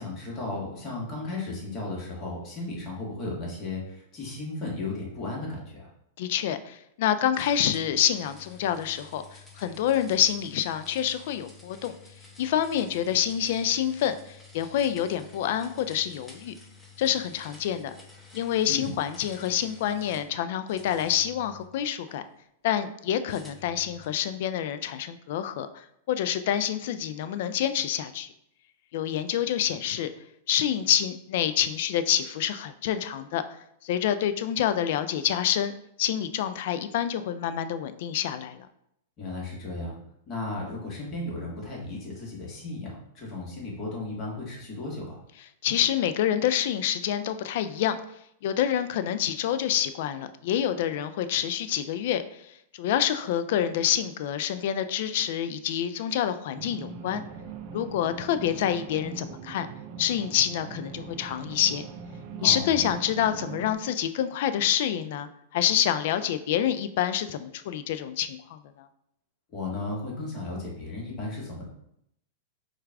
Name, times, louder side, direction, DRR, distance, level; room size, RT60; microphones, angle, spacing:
voice 1, 0.0-5.9 18.7-18.9 39.2-40.0 40.3-45.2 62.4-62.8 69.5-71.7, left 2 dB, 40° left, -3 dB, 1.4 m, -35 dB
voice 2, 6.2-9.2 9.6-11.9 12.4-16.5 17.0-17.9 18.3-22.2 22.6-28.3 28.9-30.1 30.5-33.4 33.8-35.7 36.0-38.6 45.6-48.0 48.4-52.2 52.8-57.2 57.7-59.7 60.0-61.8 62.4-68.6, left 10 dB, 60° left, 11 dB, 0.3 m, -27 dB
sound 1, 7.3-20.3 20.7-22.2 23.3-24.2, left 4 dB, 5° left, 0.8 m, -51 dB
sound 2, 56.5-63.7, right 5 dB, 45° right, 0.4 m, -41 dB
4.5 x 2.4 x 3.4 m, 0.75 s
hypercardioid pair, 115°, 0 cm